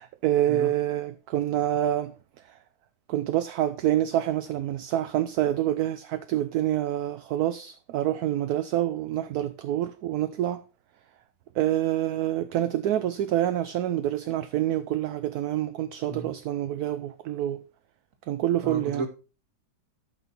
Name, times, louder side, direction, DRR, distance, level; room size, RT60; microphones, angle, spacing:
voice 1, 0.0-2.1 3.1-10.6 11.6-17.6 18.3-19.1, right 12 dB, 70° right, 1.1 m, -27 dB
voice 2, 18.6-19.1, right 3 dB, 50° right, 2.0 m, -33 dB
12.0 x 6.0 x 4.3 m
omnidirectional pair, 1.8 m